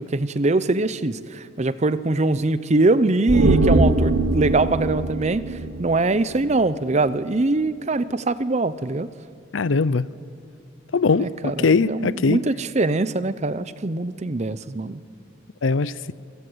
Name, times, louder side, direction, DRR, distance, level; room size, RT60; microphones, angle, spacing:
voice 1, 0.0-5.4 5.8-9.1 11.2-15.0, right 2 dB, 35° right, 15 dB, 0.7 m, -22 dB
sound 1, 3.3-6.7 7.0-7.1, right 2 dB, 90° right, 1.4 m, -22 dB
voice 2, 9.5-10.1 10.9-12.4 15.6-16.1, left 4 dB, 85° left, 18 dB, 0.6 m, -21 dB
27.0 x 16.5 x 8.0 m, 2.6 s
head